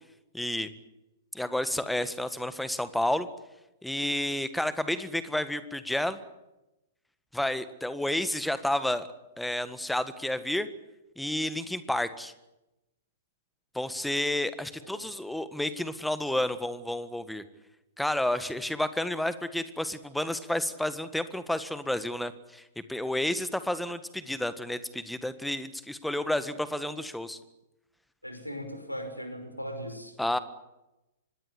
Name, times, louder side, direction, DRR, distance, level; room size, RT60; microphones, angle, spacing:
voice 1, 0.3-0.7 1.3-3.3 3.8-6.2 7.3-9.1 9.4-10.7 11.2-12.3 13.8-17.4 18.0-22.6 22.9-27.4 30.2-30.4, left 1 dB, ahead, 13 dB, 1.6 m, -30 dB
voice 2, 28.2-30.1, equal, 90° left, 6 dB, 5.7 m, -38 dB
25.5 x 20.5 x 8.5 m, 0.95 s
figure-of-eight pair, 105°, 0 cm